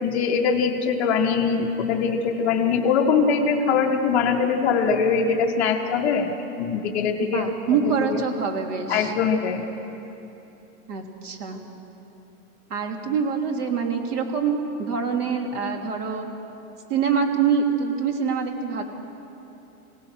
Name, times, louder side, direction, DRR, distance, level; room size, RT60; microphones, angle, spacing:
voice 1, 0.0-7.8 8.1-8.2 8.9-9.6, left 5 dB, 5° left, -7 dB, 0.4 m, -22 dB
voice 2, 7.2-9.1 10.9-11.6 12.7-16.3 16.9-18.8, right 6 dB, 90° right, 3 dB, 3.1 m, -25 dB
25.5 x 17.5 x 6.3 m, 2.9 s
supercardioid pair, 170°, 44 cm